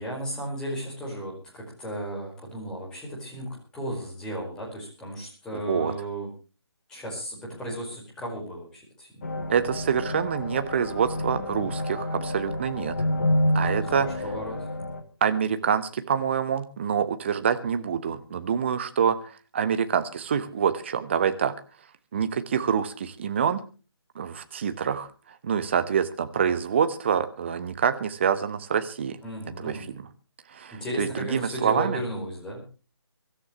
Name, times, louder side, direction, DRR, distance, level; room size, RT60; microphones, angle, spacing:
voice 1, 0.0-6.3 6.9-9.1 13.5-14.7 29.2-29.9 30.7-32.6, equal, 5° left, -4 dB, 4.8 m, -35 dB
voice 2, 5.5-5.9 9.5-12.9 13.5-14.1 15.2-19.2 19.5-21.5 22.1-23.6 24.1-25.1 25.4-29.2 29.6-30.0 30.5-32.0, right 7 dB, 25° right, 10 dB, 1.2 m, -26 dB
sound 1, 9.2-15.0, left 1 dB, 35° left, 2.4 m, -29 dB
24.5 x 13.5 x 3.1 m, 0.36 s
figure-of-eight pair, 150°, 14 cm